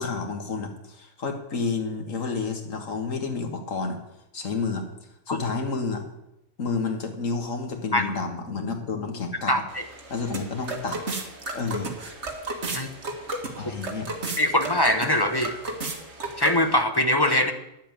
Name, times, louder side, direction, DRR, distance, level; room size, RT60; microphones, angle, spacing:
voice 1, 0.0-4.0 4.3-4.9 5.3-6.0 6.6-9.5 10.1-11.0 11.5-11.9 13.6-14.1, left 4 dB, 80° left, 4 dB, 2.0 m, -30 dB
voice 2, 9.5-9.8 12.7-12.9 14.4-15.6 16.4-17.5, left 1 dB, 20° left, 6 dB, 0.8 m, -22 dB
sound 1, 9.7-16.8, right 2 dB, 60° right, 2.0 m, -34 dB
10.5 x 7.6 x 8.9 m, 0.87 s
omnidirectional pair, 1.3 m